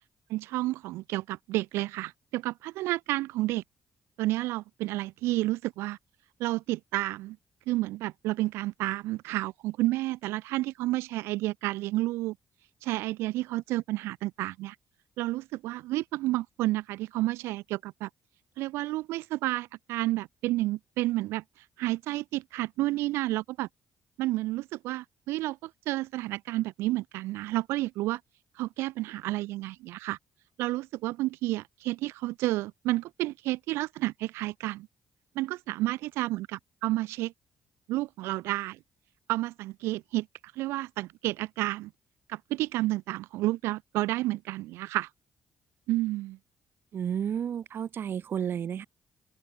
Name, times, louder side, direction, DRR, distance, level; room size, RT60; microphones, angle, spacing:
voice 1, 0.3-3.6 4.2-6.0 6.4-7.4 7.7-12.3 12.8-14.7 15.2-18.1 18.6-21.4 21.8-23.7 24.2-28.2 28.6-30.2 30.6-34.9 35.3-37.3 37.9-38.8 39.3-40.3 40.6-41.9 42.3-45.1 45.9-46.4, right 18 dB, 80° right, 1.3 m, -30 dB
voice 2, 46.9-48.9, right 8 dB, 60° right, 1.5 m, -31 dB
open air
hypercardioid pair, 50°, 4 cm